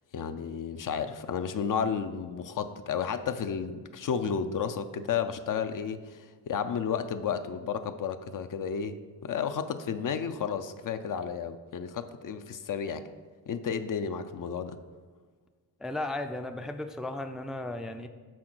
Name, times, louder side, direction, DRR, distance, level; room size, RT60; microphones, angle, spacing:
voice 1, 0.1-6.2 6.5-13.0 13.5-14.8, left 7 dB, 55° left, 9 dB, 0.5 m, -32 dB
voice 2, 15.8-18.1, left 2 dB, ahead, 7 dB, 0.4 m, -35 dB
6.3 x 3.9 x 6.1 m, 1.4 s
cardioid pair, 65°, 39 cm